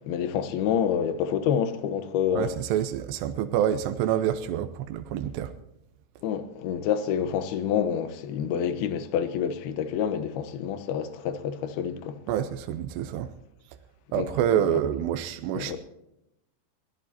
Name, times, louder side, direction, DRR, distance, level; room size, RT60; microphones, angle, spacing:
voice 1, 0.0-2.5 6.2-12.2 14.1-14.3 14.6-14.8 15.5-15.8, left 8 dB, 70° left, 2.9 m, -28 dB
voice 2, 2.3-5.5 12.3-13.3 14.1-15.8, right 10 dB, 80° right, 2.9 m, -27 dB
22.5 x 17.0 x 2.9 m
omnidirectional pair, 4.9 m